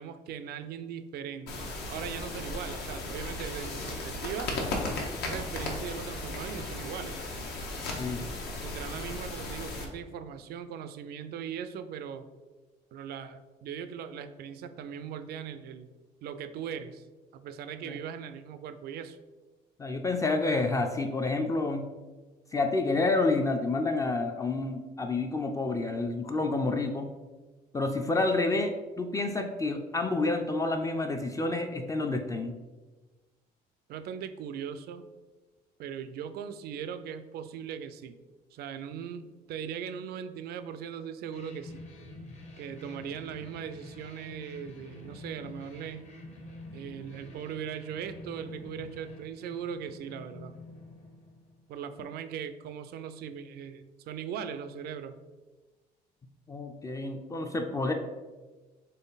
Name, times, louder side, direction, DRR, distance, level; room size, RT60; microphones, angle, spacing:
voice 1, 0.0-4.5 5.2-7.2 8.6-12.3 12.9-15.9 16.2-17.1 17.3-19.2 33.9-35.0 35.8-38.2 38.5-41.8 42.6-46.1 46.7-50.5 51.7-55.2, right 8 dB, 70° right, 11 dB, 0.4 m, -39 dB
sound 1, 1.5-9.8, left 2 dB, 75° left, 1.0 m, -36 dB
voice 2, 19.8-21.9 22.5-27.1 27.7-32.6 56.5-57.9, left 3 dB, 20° left, 4 dB, 0.4 m, -29 dB
sound 2, 41.3-51.9, left 1 dB, 40° left, 0.9 m, -47 dB
4.1 x 3.2 x 3.9 m, 1.3 s
cardioid pair, 110°, 17 cm